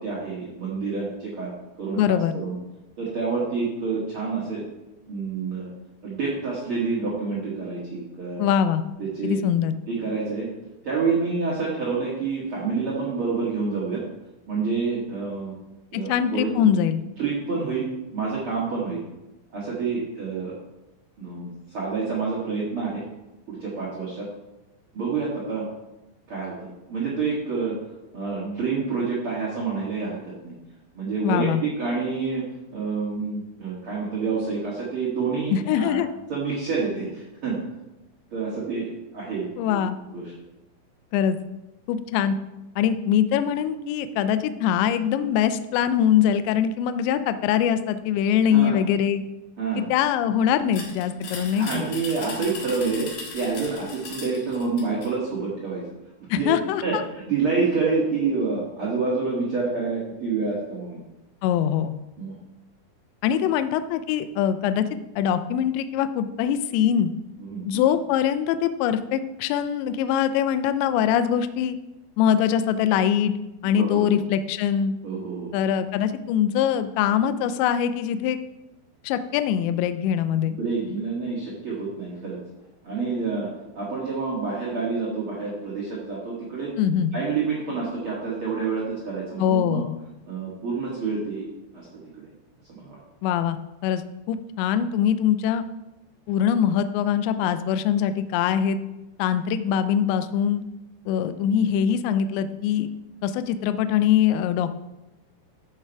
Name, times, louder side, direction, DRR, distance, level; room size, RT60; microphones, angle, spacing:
voice 1, 0.0-1.5 1.8-2.5 3.0-4.6 5.1-5.7 6.0-8.4 9.0-9.4 9.9-10.5 10.8-14.0 14.5-15.5 15.9-16.7 17.2-17.9 18.1-19.0 19.5-20.5 21.2-23.0 23.5-24.3 24.9-25.6 26.3-27.7 28.1-30.5 30.9-32.4 32.7-36.0 36.3-37.6 38.3-39.8 40.1-40.2 48.4-48.8 49.6-49.9 51.2-55.8 56.4-56.5 56.8-61.0 62.2-62.4 63.4-63.5 67.4-67.6 73.7-74.1 75.0-75.5 80.5-82.4 82.8-83.5 83.7-86.7 87.1-89.8 90.3-91.5 91.7-92.3 92.7-93.0, right 4 dB, 75° right, -5 dB, 1.2 m, -28 dB
voice 2, 2.0-2.3 8.4-8.8 9.2-9.7 15.9-17.0 31.2-31.6 35.5-36.1 39.6-40.0 41.1-41.4 41.9-42.4 42.8-49.2 49.8-51.9 56.3-57.0 61.4-61.9 63.2-64.9 65.2-67.1 67.7-71.8 72.2-73.3 73.6-74.9 75.5-78.4 79.0-80.5 86.8-87.1 89.4-90.0 93.2-93.6 93.8-94.0 94.3-95.7 96.3-98.8 99.2-100.6 101.1-102.9 103.2-104.7, left 9 dB, 80° left, 10 dB, 2.6 m, -23 dB
sound 1, 50.7-55.2, left 4 dB, 60° left, 2.2 m, -38 dB
13.5 x 5.8 x 4.6 m, 0.96 s
omnidirectional pair, 5.7 m